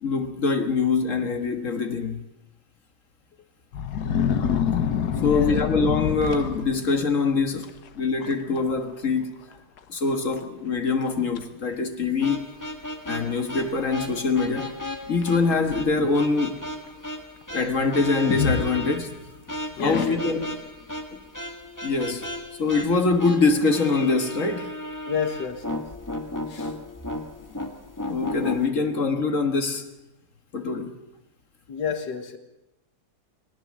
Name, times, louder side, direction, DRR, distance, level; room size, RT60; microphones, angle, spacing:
voice 1, 0.0-2.2 5.2-7.7 8.0-9.4 9.9-12.5 13.1-14.8 15.1-16.6 17.5-19.1 19.8-20.5 21.1-21.2 21.8-22.3 22.6-24.7 28.1-29.8 30.5-30.9, left 4 dB, 50° left, 1.9 m, -24 dB
sound 1, 3.7-7.0 7.6-7.9 8.2-8.6 8.9-9.0 9.8-9.9 10.4-10.5 11.0-11.4 12.3-12.4 15.2-16.2 18.2-19.3 19.8-20.5, left 7 dB, 65° left, 1.6 m, -27 dB
voice 2, 5.1-5.6 19.8-20.2 25.1-25.8 26.5-26.7 31.7-32.4, left 7 dB, 85° left, 2.2 m, -29 dB
sound 2, 12.2-28.7, left 1 dB, 10° left, 1.5 m, -35 dB
20.0 x 18.5 x 7.4 m
omnidirectional pair, 1.8 m